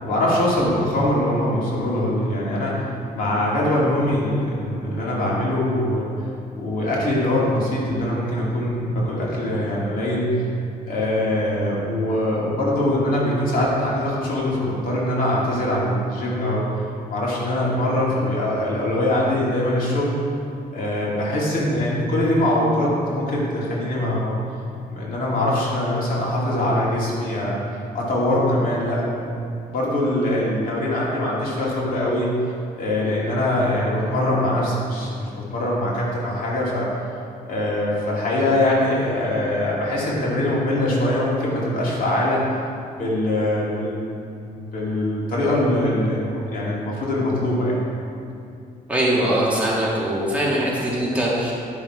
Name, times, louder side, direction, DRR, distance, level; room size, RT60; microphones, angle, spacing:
voice 1, 0.0-2.9 3.1-6.1 6.6-10.5 10.9-16.6 17.1-20.1 20.7-24.4 24.9-27.6 27.9-29.4 29.7-32.3 32.8-36.9 37.5-42.4 43.0-44.1 44.5-47.8, left 1 dB, 65° left, -5 dB, 2.3 m, -22 dB
voice 2, 48.9-51.5, right 1 dB, 10° right, -6 dB, 1.8 m, -21 dB
10.5 x 6.0 x 4.8 m, 2.5 s
cardioid pair, 135°, 15 cm